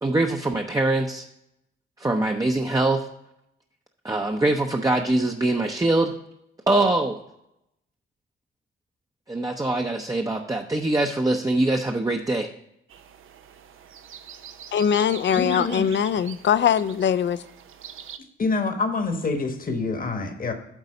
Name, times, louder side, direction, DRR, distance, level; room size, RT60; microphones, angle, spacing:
voice 1, 0.0-1.3 2.0-3.1 4.0-6.2 6.7-7.2 9.3-12.5, right 2 dB, 15° right, 0.6 m, -23 dB
sound 1, 12.9-18.2, right 8 dB, 80° right, 0.6 m, -43 dB
voice 2, 14.7-17.4, left 8 dB, 65° left, 0.4 m, -22 dB
voice 3, 15.3-16.0 18.4-20.5, left 3 dB, 45° left, 1.2 m, -26 dB
8.2 x 4.0 x 6.5 m
cardioid pair, 75°, 20 cm